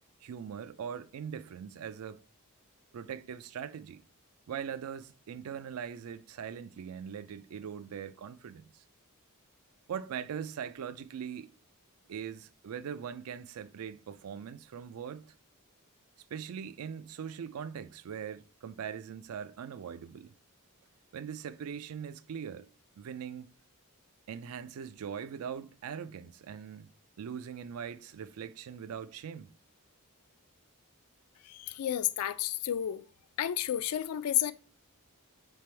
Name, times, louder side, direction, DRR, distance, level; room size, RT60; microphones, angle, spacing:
voice 1, 0.2-2.2 2.9-4.0 4.5-8.8 9.9-11.5 12.1-15.3 16.3-20.3 21.1-22.7 23.0-23.5 24.3-29.5, right 7 dB, 70° right, 0.4 m, -41 dB
voice 2, 31.4-33.0 33.4-34.5, left 11 dB, 75° left, 0.3 m, -31 dB
3.4 x 3.4 x 4.3 m
head